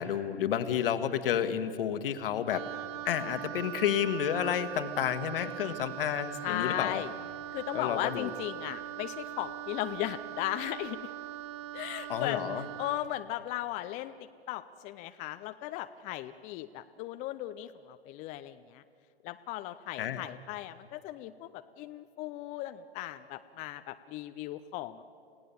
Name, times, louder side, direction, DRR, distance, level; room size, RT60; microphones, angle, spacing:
voice 1, 0.0-2.7 3.0-7.0 7.7-8.3 12.1-12.6 20.0-20.2, left 9 dB, 55° left, 10 dB, 1.6 m, -30 dB
Wind instrument woodwind instrument, 2.5-13.1, right 13 dB, 30° right, 0.7 m, -41 dB
voice 2, 6.4-7.1 7.5-11.1 11.7-12.5 12.8-14.1 14.5-18.8 19.2-25.0, left 14 dB, 20° left, 9 dB, 0.5 m, -37 dB
28.5 x 16.0 x 7.1 m, 2.4 s
hypercardioid pair, 115°, 32 cm